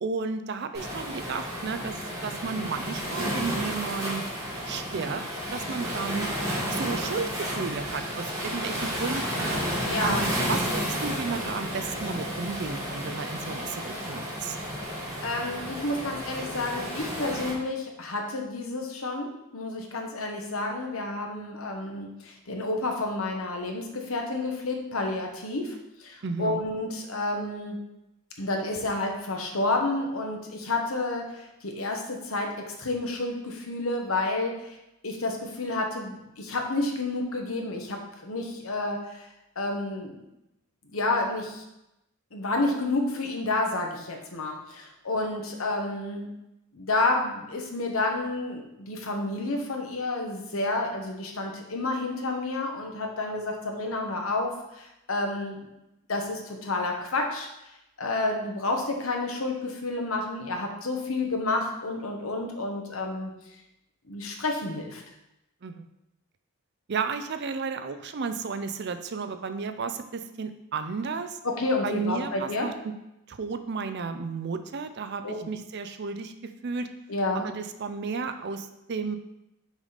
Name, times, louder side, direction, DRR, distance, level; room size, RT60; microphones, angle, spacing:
voice 1, 0.0-4.2 4.6-5.2 5.5-6.3 6.7-9.6 10.0-14.6 26.2-26.6 65.6-65.9 66.9-71.4 71.8-72.9 73.3-76.9 77.3-79.2, right 5 dB, 50° right, 9 dB, 0.5 m, -33 dB
Waves surf, 0.7-17.5, equal, 15° right, 2.4 m, -32 dB
voice 2, 9.8-10.2 15.2-27.8 28.4-32.5 32.8-34.7 35.0-39.2 39.6-40.2 40.9-41.6 42.3-46.3 46.7-55.6 56.1-57.5 58.0-63.3 64.1-65.0 71.4-72.7 75.2-75.4 77.1-77.5, left 2 dB, 70° left, 2 dB, 1.1 m, -30 dB
6.2 x 5.0 x 4.1 m, 0.89 s
head